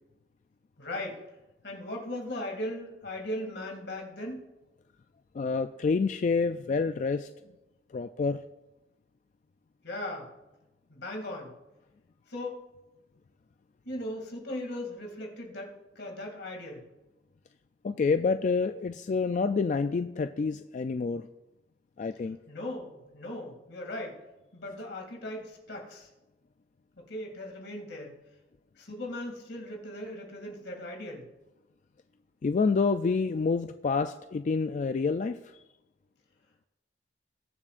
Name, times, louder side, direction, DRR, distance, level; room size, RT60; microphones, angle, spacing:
voice 1, 0.8-1.2 1.6-4.4 9.8-10.3 10.9-11.5 12.3-12.6 13.8-16.8 22.5-24.2 24.5-26.1 27.1-28.2 28.8-31.3, left 1 dB, 75° left, 1 dB, 2.5 m, -38 dB
voice 2, 5.3-7.3 7.9-8.4 17.8-21.3 22.0-22.4 32.4-35.4, left 4 dB, 45° left, 9 dB, 0.3 m, -28 dB
21.0 x 7.2 x 2.5 m, 1.0 s
head